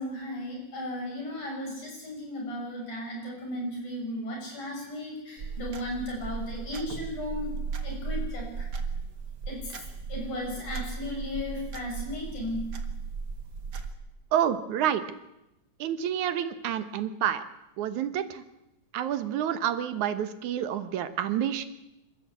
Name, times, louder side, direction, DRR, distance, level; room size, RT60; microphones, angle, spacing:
voice 1, 0.0-8.7 9.5-12.6, left 1 dB, 85° left, -1 dB, 8.3 m, -35 dB
sound 1, 5.4-13.9, right 5 dB, 45° right, 1.6 m, -36 dB
voice 2, 14.3-15.0 15.8-17.4 17.8-18.4 18.9-21.7, right 10 dB, 75° right, 11 dB, 2.6 m, -28 dB
27.0 x 13.0 x 8.3 m, 0.91 s
omnidirectional pair, 3.5 m